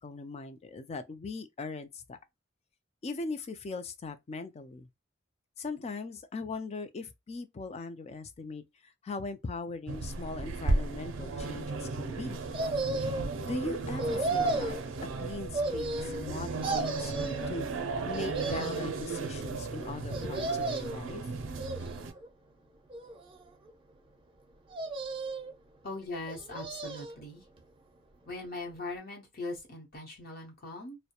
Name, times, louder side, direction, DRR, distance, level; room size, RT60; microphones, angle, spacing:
voice 1, 0.0-2.2 3.0-4.9 5.6-12.4 13.4-14.8 15.2-17.7 18.1-21.3, left 3 dB, 35° left, 0.3 m, -40 dB
sound 1, 9.9-22.1, right 3 dB, 85° right, 0.5 m, -35 dB
sound 2, 12.5-13.3 14.0-14.8 15.5-16.3 16.6-17.5 18.1-18.9 20.1-21.0 21.6-22.3 22.9-23.7 24.7-25.5 26.2-27.2 27.6-27.7, right 2 dB, 25° right, 0.5 m, -34 dB
voice 2, 25.8-27.4 28.3-31.0, left 2 dB, 50° left, 0.8 m, -40 dB
2.3 x 2.1 x 2.8 m
head